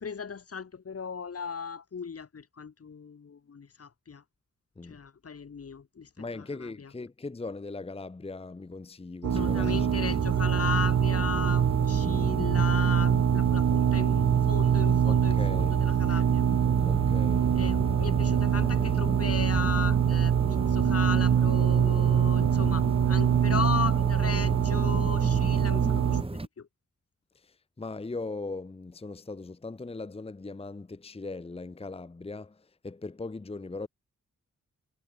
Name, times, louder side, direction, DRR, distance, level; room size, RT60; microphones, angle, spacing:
voice 1, 0.0-4.2 4.8-6.9 9.3-16.4 17.6-26.2 26.6-26.7, left 6 dB, 50° left, 1.3 m, -36 dB
voice 2, 6.2-9.9 15.0-15.8 16.8-17.6 27.3-33.9, left 3 dB, 20° left, 0.8 m, -39 dB
sound 1, 9.2-26.2, right 9 dB, 75° right, 0.9 m, -24 dB
sound 2, 9.3-26.5, right 2 dB, 20° right, 1.8 m, -34 dB
wide cardioid pair, 90°, 30 cm